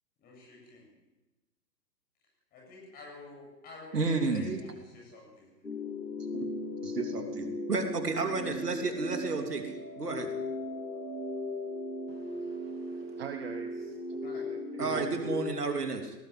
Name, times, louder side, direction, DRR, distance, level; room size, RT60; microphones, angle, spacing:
voice 1, 0.2-0.9 2.5-5.6 14.2-14.4, left 3 dB, 20° left, 0 dB, 7.5 m, -50 dB
voice 2, 3.9-4.6 6.3-6.5 6.8-10.3 14.7-16.1, right 3 dB, 65° right, 5 dB, 3.2 m, -32 dB
sound 1, 5.6-15.5, left 2 dB, 80° left, 6.2 m, -38 dB
voice 3, 12.1-14.0 14.8-15.3, right 8 dB, 35° right, 6 dB, 1.6 m, -43 dB
19.5 x 18.5 x 8.1 m, 1.1 s
figure-of-eight pair, 130°, 50 cm